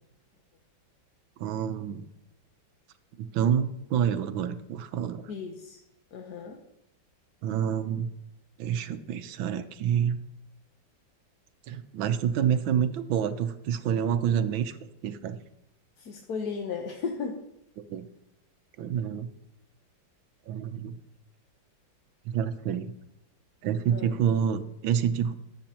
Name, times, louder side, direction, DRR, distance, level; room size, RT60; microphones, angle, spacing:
voice 1, 1.4-2.1 3.2-5.3 7.4-8.1 8.6-10.2 11.7-15.4 17.9-18.1 18.8-19.3 20.5-21.0 22.2-22.9 23.6-25.3, right 8 dB, 85° right, 10 dB, 1.6 m, -28 dB
voice 2, 5.3-5.8 6.1-6.6 16.0-17.4 23.9-24.1, left 5 dB, 60° left, 3 dB, 1.5 m, -35 dB
23.5 x 8.3 x 2.9 m, 0.84 s
omnidirectional pair, 2.1 m